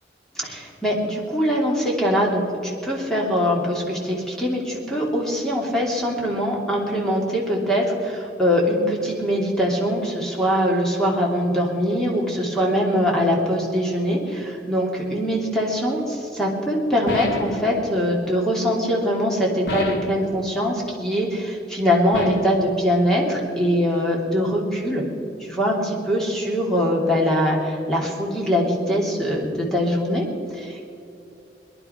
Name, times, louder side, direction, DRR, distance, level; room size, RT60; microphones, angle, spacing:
voice 1, 0.3-25.0 25.5-30.9, equal, 5° left, -3 dB, 2.8 m, -22 dB
sound 1, 17.1-17.7 19.7-20.2 22.1-22.6, left 2 dB, 90° left, 2.2 m, -29 dB
23.0 x 11.0 x 5.8 m, 2.8 s
head